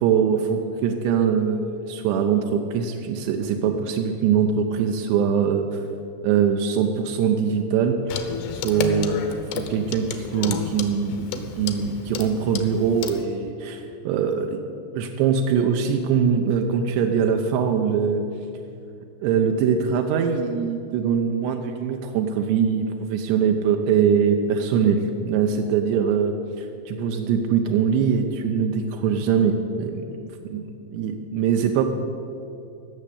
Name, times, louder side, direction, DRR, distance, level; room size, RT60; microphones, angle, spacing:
voice 1, 0.0-5.8 6.2-8.0 8.6-9.2 9.6-18.2 19.2-30.2 30.5-31.9, right 7 dB, 85° right, 4 dB, 2.9 m, -22 dB
Clock, 8.1-13.3, left 5 dB, 75° left, 2.6 m, -31 dB
16.0 x 6.5 x 8.4 m, 2.6 s
omnidirectional pair, 4.9 m